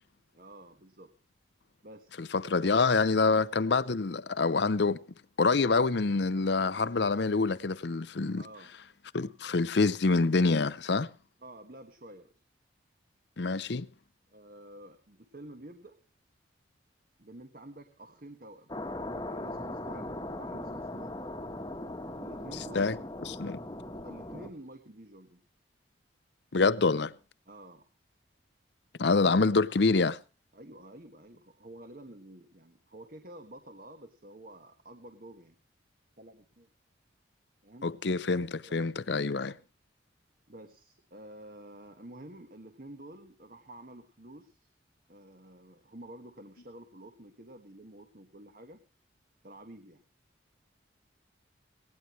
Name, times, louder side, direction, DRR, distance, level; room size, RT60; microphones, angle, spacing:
voice 1, 0.3-1.1 1.8-2.2 2.6-2.8 8.4-8.7 11.4-12.3 14.3-16.0 17.2-18.7 19.2-20.1 20.4-21.1 22.2-23.0 24.0-25.4 27.5-27.9 30.5-35.6 36.2-36.7 37.6-37.9 38.7-38.9 40.5-44.7 45.1-48.8 49.4-50.0, right 1 dB, 45° right, 1.4 m, -50 dB
voice 2, 2.2-5.0 5.4-8.4 9.1-11.1 13.4-13.9 22.7-23.0 23.4-23.6 26.5-27.1 29.0-30.2 37.8-39.5, left 3 dB, 65° left, 0.6 m, -26 dB
sound 1, 18.7-24.5, left 1 dB, 20° left, 1.2 m, -39 dB
18.0 x 18.0 x 3.2 m
head